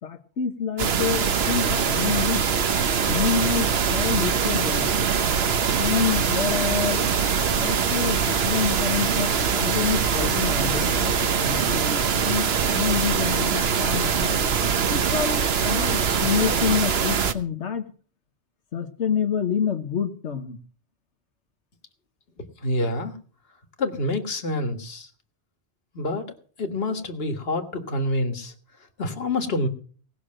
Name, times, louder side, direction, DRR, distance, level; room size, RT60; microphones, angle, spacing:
voice 1, 0.0-2.5 3.1-5.1 5.8-7.1 7.6-14.3 14.9-17.8 18.7-20.6, left 7 dB, 90° left, 5 dB, 1.4 m, -28 dB
sound 1, 0.8-17.3, right 6 dB, 65° right, 1.2 m, -23 dB
voice 2, 22.4-23.1 23.8-25.1 25.9-26.3 26.6-28.5 29.0-29.7, left 1 dB, 60° left, 6 dB, 1.9 m, -27 dB
18.5 x 6.5 x 7.6 m, 0.43 s
omnidirectional pair, 1.1 m